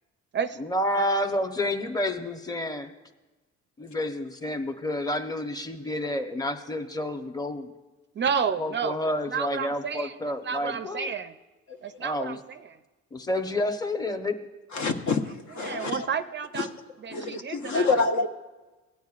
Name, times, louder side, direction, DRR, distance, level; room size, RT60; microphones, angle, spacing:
voice 1, 0.6-2.9 3.8-7.7 8.6-11.1 12.0-12.4 13.1-14.4, left 1 dB, 15° left, 7 dB, 0.8 m, -29 dB
voice 2, 8.2-10.1 10.4-11.3 11.8-12.8 15.6-16.7 17.0-17.9, right 6 dB, 40° right, 11 dB, 0.4 m, -31 dB
voice 3, 14.7-16.1 16.5-16.7 17.1-18.3, left 4 dB, 70° left, 4 dB, 1.0 m, -27 dB
17.0 x 9.2 x 2.4 m, 1.2 s
cardioid pair, 90°, 30 cm